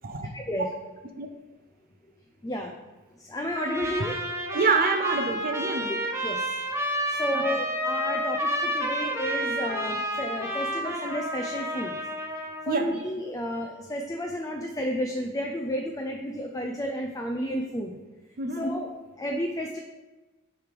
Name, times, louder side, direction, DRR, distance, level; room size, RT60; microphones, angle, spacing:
voice 1, 0.3-0.7 2.4-2.7 3.2-4.2 5.9-6.0 6.2-6.6 7.1-11.9 12.7-17.9 18.5-19.8, equal, 15° left, 3 dB, 0.4 m, -32 dB
Trumpet, 3.6-12.7, equal, 15° right, 0.9 m, -30 dB
voice 2, 4.5-5.9 7.3-7.4 12.7-13.0 18.4-18.6, right 4 dB, 40° right, 5 dB, 0.6 m, -26 dB
7.9 x 3.3 x 5.2 m, 1.2 s
head